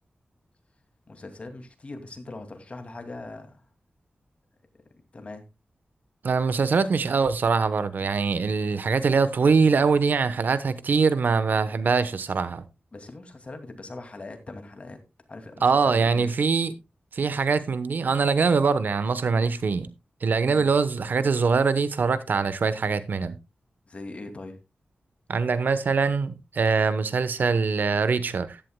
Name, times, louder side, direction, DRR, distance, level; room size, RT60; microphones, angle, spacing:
voice 1, 1.1-3.6 5.1-5.4 12.9-15.0 15.3-16.3 20.5-20.7 23.9-24.6, left 2 dB, 40° left, 2.3 m, -41 dB
voice 2, 6.2-12.6 15.6-16.7 17.1-19.9 20.2-23.4 25.3-28.6, right 5 dB, 70° right, 0.9 m, -23 dB
15.5 x 11.0 x 2.2 m
wide cardioid pair, 105°, 3 cm